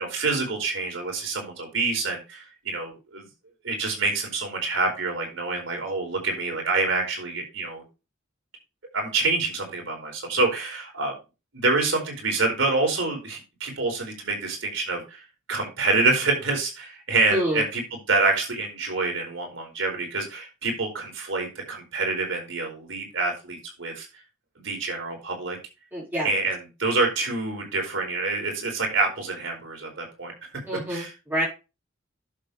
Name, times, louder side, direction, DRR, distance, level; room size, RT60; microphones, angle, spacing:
voice 1, 0.0-3.3 3.6-7.8 8.9-11.1 11.5-17.8 18.1-24.1 24.6-25.6 26.2-30.3 30.9-31.1, right 3 dB, 70° right, 1 dB, 4.8 m, -27 dB
voice 2, 17.3-17.6 25.9-26.3 30.7-31.5, equal, 10° right, -6 dB, 4.9 m, -27 dB
11.5 x 7.1 x 3.3 m, 0.29 s
head